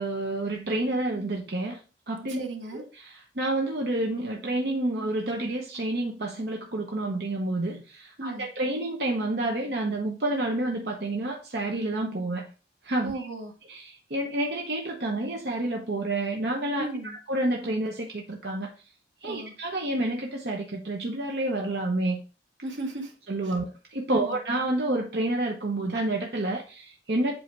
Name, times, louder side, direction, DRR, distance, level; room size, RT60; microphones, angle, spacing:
voice 1, 0.0-1.8 2.1-2.4 2.7-12.5 12.8-13.1 13.7-16.8 17.3-18.7 19.2-22.2 23.3-27.3, right 2 dB, 60° right, 0 dB, 0.9 m, -29 dB
voice 2, 2.3-2.8 8.2-8.5 13.0-13.5 16.8-17.1 19.2-19.5 22.6-23.1 23.4-23.5 24.1-24.4, right 2 dB, 80° right, 3 dB, 1.4 m, -35 dB
7.8 x 2.8 x 4.6 m, 0.35 s
head